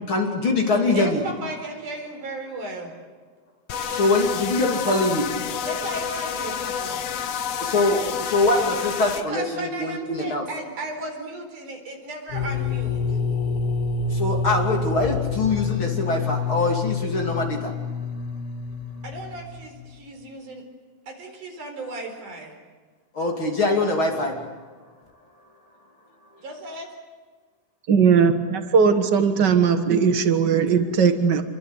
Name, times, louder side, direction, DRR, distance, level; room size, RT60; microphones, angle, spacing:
voice 1, 0.1-1.2 4.0-5.2 7.7-8.0 8.3-10.4 14.2-17.4 23.2-24.3, left 2 dB, 35° left, 1 dB, 3.3 m, -23 dB
voice 2, 0.9-2.9 5.6-7.0 9.2-13.2 19.0-20.6 21.1-22.6 26.4-26.9, right 1 dB, 55° right, 4 dB, 5.8 m, -35 dB
sound 1, 3.7-9.2, left 8 dB, 65° left, 1.6 m, -29 dB
sound 2, 12.3-20.0, left 5 dB, 85° left, 3.7 m, -27 dB
voice 3, 27.9-31.4, right 6 dB, 75° right, 7 dB, 1.0 m, -19 dB
28.0 x 23.5 x 8.1 m, 1.5 s
omnidirectional pair, 4.3 m